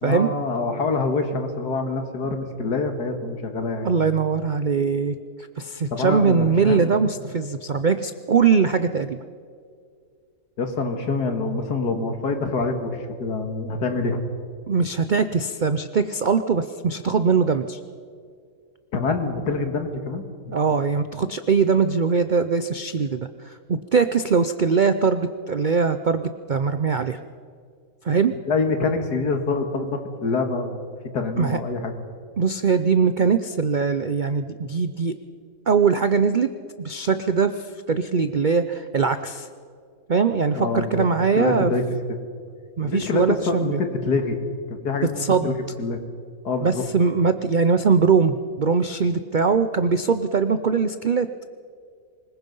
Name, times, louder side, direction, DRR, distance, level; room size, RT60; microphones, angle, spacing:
voice 1, 0.0-4.0 5.9-6.9 10.6-14.2 18.9-20.5 28.5-30.8 31.1-31.9 40.6-41.1 41.4-41.8 42.8-44.4 44.7-46.0 46.4-46.8, left 3 dB, 80° left, 6 dB, 2.4 m, -26 dB
voice 2, 3.8-5.2 5.6-9.2 14.7-17.8 20.5-27.2 28.0-28.3 31.4-31.6 32.4-35.1 35.7-36.5 36.8-39.5 40.1-41.7 42.8-43.8 45.2-45.6 46.6-51.3, right 5 dB, 65° right, 10 dB, 0.4 m, -21 dB
24.5 x 21.0 x 5.5 m, 2.2 s
omnidirectional pair, 1.7 m